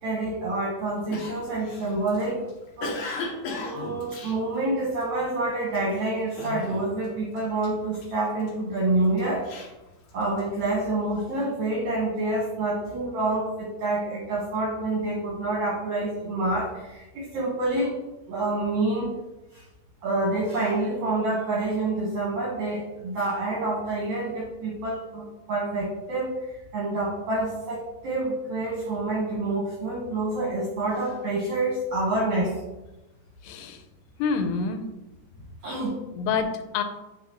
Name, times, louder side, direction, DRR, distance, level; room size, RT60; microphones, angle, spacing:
voice 1, 0.0-2.4 2.8-3.0 3.6-9.5 10.1-18.0 18.3-19.1 19.5-19.6 20.0-26.5 26.7-32.6 35.6-36.0, right 2 dB, 65° right, -4 dB, 1.9 m, -27 dB
Cough, 1.1-5.2 5.7-6.0 6.4-7.1 7.3-8.5 9.0-10.6, left 3 dB, 65° left, 2.6 m, -36 dB
voice 2, 33.4-33.8 34.2-34.8 36.2-36.8, left 5 dB, 90° left, 7 dB, 2.8 m, -27 dB
9.6 x 3.5 x 2.9 m, 1.0 s
omnidirectional pair, 4.8 m